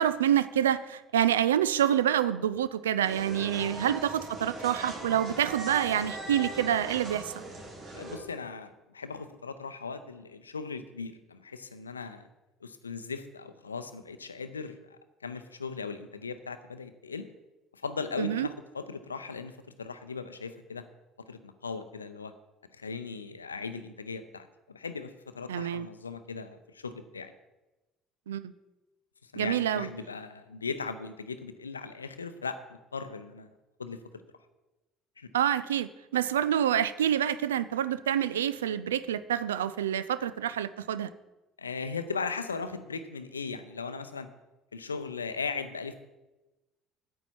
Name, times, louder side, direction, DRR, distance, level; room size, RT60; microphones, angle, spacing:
voice 1, 0.0-7.3 18.2-18.5 25.5-25.9 28.3-28.5 29.4-29.9 35.3-41.1, right 10 dB, 75° right, 15 dB, 0.4 m, -27 dB
sound 1, 3.0-8.2, right 2 dB, 50° right, 2.9 m, -39 dB
voice 2, 7.9-12.3 12.6-17.3 17.7-20.8 21.3-22.3 22.7-27.3 29.2-32.6 32.9-33.5 33.8-34.0 35.2-35.3 41.6-44.3 44.7-45.9, left 5 dB, 80° left, 11 dB, 0.6 m, -38 dB
9.1 x 8.6 x 4.5 m, 1.0 s
figure-of-eight pair, 55°, 0 cm